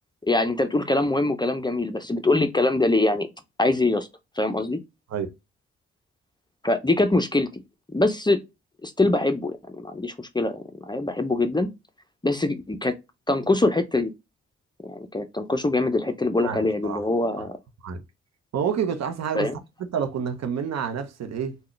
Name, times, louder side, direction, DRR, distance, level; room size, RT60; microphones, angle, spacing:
voice 1, 0.2-3.3 3.6-4.1 4.4-4.8 6.6-7.6 7.9-8.4 8.8-11.7 12.2-12.9 13.3-14.1 14.8-17.6 19.3-19.6, left 2 dB, 15° left, 0.6 m, -23 dB
voice 2, 16.4-17.0 17.8-18.0 18.5-19.5 19.8-21.6, right 7 dB, 55° right, 0.8 m, -28 dB
3.6 x 2.3 x 3.1 m
hypercardioid pair, 45°, 31 cm